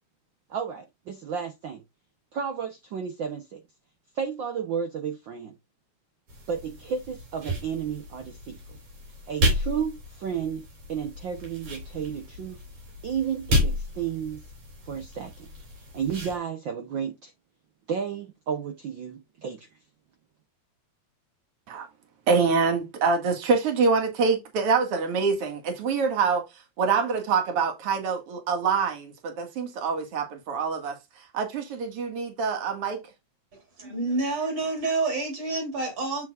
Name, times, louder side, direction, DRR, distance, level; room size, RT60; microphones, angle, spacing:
voice 1, 0.5-1.8 2.3-3.6 4.1-5.5 6.5-8.8 9.3-12.6 13.0-14.4 14.8-15.5 15.9-17.3 17.9-19.7, right 7 dB, 90° right, 1.0 m, -32 dB
sound 1, 6.3-16.4, left 1 dB, 70° right, 5.0 m, -32 dB
voice 2, 22.3-26.4 26.8-31.0 31.3-33.0, right 5 dB, 55° right, 2.6 m, -25 dB
voice 3, 33.8-36.2, right 3 dB, 40° right, 3.6 m, -28 dB
7.6 x 7.4 x 2.4 m
omnidirectional pair, 3.3 m